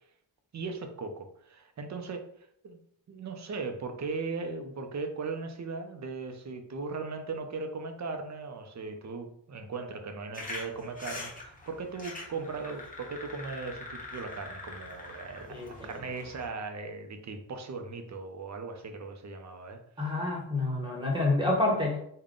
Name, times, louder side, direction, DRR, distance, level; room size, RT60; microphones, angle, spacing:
voice 1, 0.5-2.2 2.6-2.8 3.1-20.1, right 4 dB, 45° right, 6 dB, 0.5 m, -38 dB
sound 1, 10.3-16.5, left 2 dB, 20° left, 0.8 m, -43 dB
voice 2, 20.0-22.0, left 2 dB, 10° right, -1 dB, 0.9 m, -28 dB
3.6 x 2.2 x 3.6 m, 0.69 s
wide cardioid pair, 140°, 42 cm